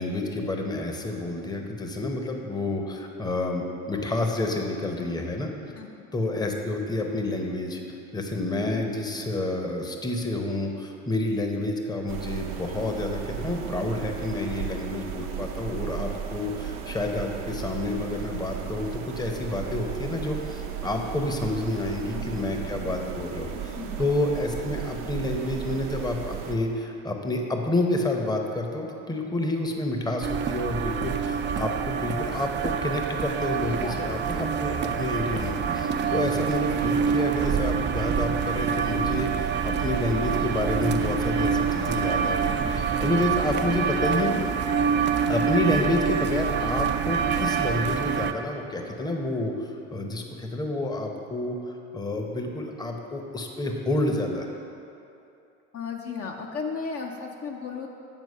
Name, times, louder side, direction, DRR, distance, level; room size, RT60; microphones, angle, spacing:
voice 1, 0.0-5.5 6.1-7.8 8.1-44.3 45.3-54.5, left 2 dB, 10° left, 3 dB, 0.8 m, -29 dB
voice 2, 5.8-6.1 14.5-14.8 22.1-22.6 23.8-24.0 33.7-34.1 42.2-42.5 55.7-57.9, left 5 dB, 40° left, 1 dB, 0.7 m, -36 dB
sound 1, 12.1-26.6, right 9 dB, 75° right, 0.8 m, -35 dB
Sunday Walk, 30.2-48.3, right 6 dB, 30° right, 0.4 m, -26 dB
8.0 x 4.5 x 5.5 m, 2.8 s
hypercardioid pair, 80°, 37 cm